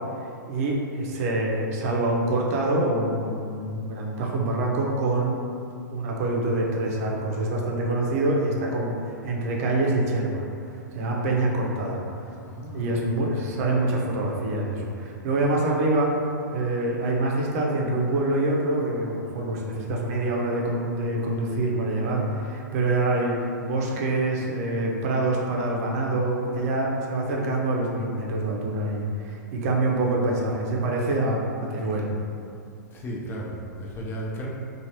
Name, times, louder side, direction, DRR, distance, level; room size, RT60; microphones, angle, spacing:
voice 1, 0.2-5.4 5.9-10.4 10.7-12.2 12.7-16.2 16.5-32.1, right 2 dB, 50° right, -1 dB, 0.6 m, -25 dB
voice 2, 12.4-13.0 32.9-34.5, equal, 25° left, -3 dB, 0.6 m, -34 dB
3.1 x 2.4 x 2.9 m, 2.5 s
hypercardioid pair, 110°, 10 cm